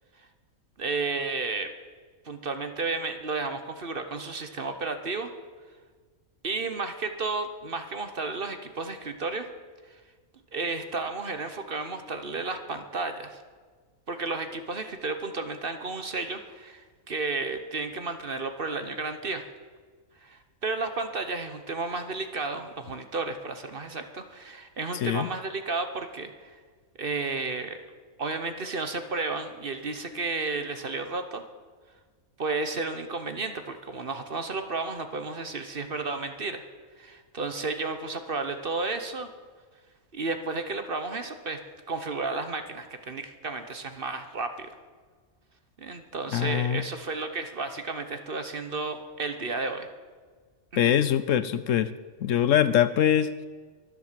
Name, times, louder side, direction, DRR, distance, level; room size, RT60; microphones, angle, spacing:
voice 1, 0.8-1.7 2.2-5.3 6.4-9.5 9.9-10.0 10.5-13.4 14.1-19.4 20.2-26.6 27.0-27.8 28.2-31.4 32.4-36.6 37.0-39.3 40.1-41.6 41.9-44.7 45.8-49.9 50.7-50.9, right 3 dB, 40° right, 8 dB, 1.2 m, -32 dB
voice 2, 46.3-46.8 50.8-51.9 52.2-53.3, left 10 dB, 65° left, 14 dB, 0.9 m, -23 dB
23.0 x 7.7 x 7.5 m, 1.5 s
omnidirectional pair, 1.5 m